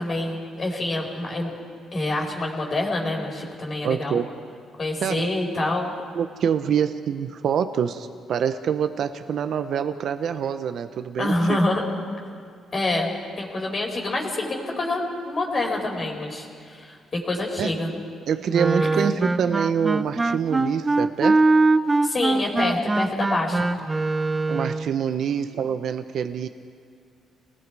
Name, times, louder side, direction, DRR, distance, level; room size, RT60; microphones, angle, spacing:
voice 1, 0.0-1.5 1.9-4.2 4.8-5.9 11.2-11.9 12.7-13.1 13.4-17.9 18.9-19.1 22.0-23.7, left 2 dB, 40° left, 1 dB, 4.7 m, -26 dB
voice 2, 3.8-4.3 5.0-5.3 6.1-11.6 17.6-17.7 18.3-21.4 24.5-26.5, right 8 dB, 65° right, 9 dB, 0.8 m, -25 dB
Wind instrument woodwind instrument, 18.5-24.9, right 2 dB, 20° right, 0.6 m, -22 dB
29.0 x 19.5 x 4.8 m, 2.3 s
cardioid pair, 90°, 0 cm